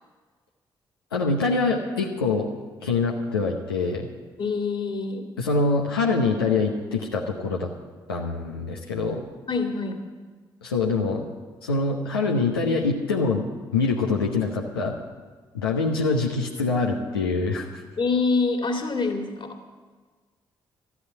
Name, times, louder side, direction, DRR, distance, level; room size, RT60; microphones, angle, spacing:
voice 1, 1.1-2.5 2.8-4.1 5.4-7.7 8.1-9.2 10.6-11.3 11.6-13.4 13.7-15.0 15.5-17.8, left 3 dB, 90° left, -1 dB, 0.9 m, -24 dB
voice 2, 4.4-5.3 9.5-10.0 18.0-19.6, left 4 dB, 45° left, 4 dB, 2.3 m, -26 dB
13.0 x 8.4 x 9.6 m, 1.4 s
hypercardioid pair, 40°, 12 cm